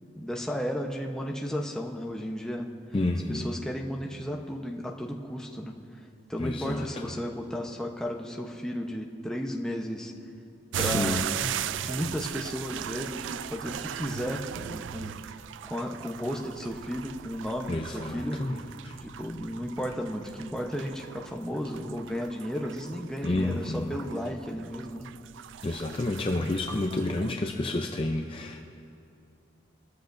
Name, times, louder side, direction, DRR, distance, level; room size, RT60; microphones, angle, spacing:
voice 1, 0.2-2.7 3.3-6.0 6.3-10.1 10.8-11.2 11.8-15.4 15.7-18.6 19.0-25.1, equal, 5° left, 0 dB, 0.9 m, -34 dB
voice 2, 2.9-3.5 6.4-7.1 10.7-11.5 17.7-18.6 18.8-19.0 23.2-24.0 25.6-28.6, left 2 dB, 30° left, 2 dB, 0.5 m, -30 dB
sound 1, 10.7-27.3, right 10 dB, 80° right, 0.3 m, -38 dB
23.0 x 13.5 x 2.6 m, 2.5 s
head